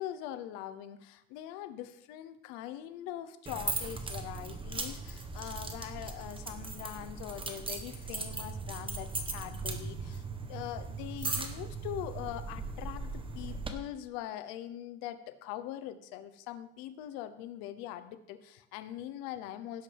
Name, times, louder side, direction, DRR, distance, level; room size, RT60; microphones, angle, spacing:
voice 1, 0.0-10.2 10.5-19.8, left 12 dB, 85° left, 11 dB, 0.9 m, -42 dB
sound 1, 3.5-13.7, right 4 dB, 15° right, 0.9 m, -38 dB
17.0 x 7.8 x 3.5 m, 0.82 s
cardioid pair, 145°, 35 cm